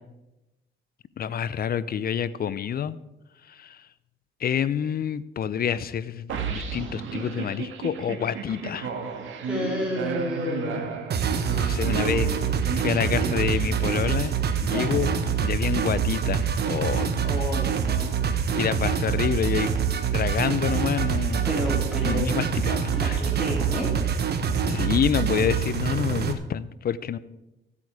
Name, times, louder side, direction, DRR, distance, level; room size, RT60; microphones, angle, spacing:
voice 1, 1.2-3.0 3.5-3.8 4.4-8.9 11.6-12.3 12.7-15.1 15.4-17.1 18.5-19.7 20.1-21.5 22.0-23.2 24.6-27.2, left 8 dB, 50° left, 16 dB, 0.6 m, -28 dB
sound 1, 6.3-14.6, right 5 dB, 75° right, 1.8 m, -33 dB
voice 2, 9.4-10.9 14.7-15.0 17.2-18.2 21.4-22.3 22.9-23.9, left 1 dB, 5° right, -4 dB, 3.6 m, -30 dB
sound 2, 11.1-26.3, right 7 dB, 55° right, 1.3 m, -25 dB
14.5 x 8.4 x 4.9 m, 0.96 s
cardioid pair, 90°, 20 cm